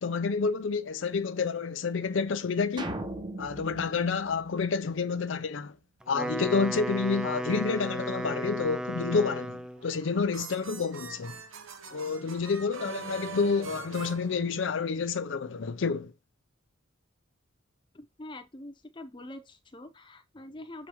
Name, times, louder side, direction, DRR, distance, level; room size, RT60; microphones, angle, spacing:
voice 1, 0.0-3.0 3.4-5.8 6.1-11.4 11.9-16.1, left 4 dB, 65° left, 0.5 m, -29 dB
sound 1, 2.8-5.2, right 1 dB, 20° right, 0.8 m, -39 dB
Wind instrument woodwind instrument, 6.0-9.9, equal, 5° right, 0.3 m, -34 dB
sound 2, 9.8-15.1, right 5 dB, 80° right, 0.9 m, -43 dB
voice 2, 17.9-20.9, left 1 dB, 25° left, 0.7 m, -45 dB
7.2 x 4.9 x 3.0 m
head